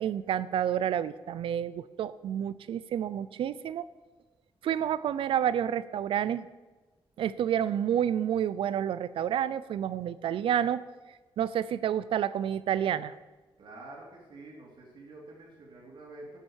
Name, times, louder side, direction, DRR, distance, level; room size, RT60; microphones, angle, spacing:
voice 1, 0.0-3.8 4.6-6.5 7.2-10.8 11.4-13.1, right 9 dB, 80° right, 17 dB, 0.6 m, -29 dB
voice 2, 13.6-16.4, right 2 dB, 60° right, -2 dB, 3.2 m, -48 dB
13.5 x 9.1 x 6.4 m, 1.2 s
wide cardioid pair, 160°, 9 cm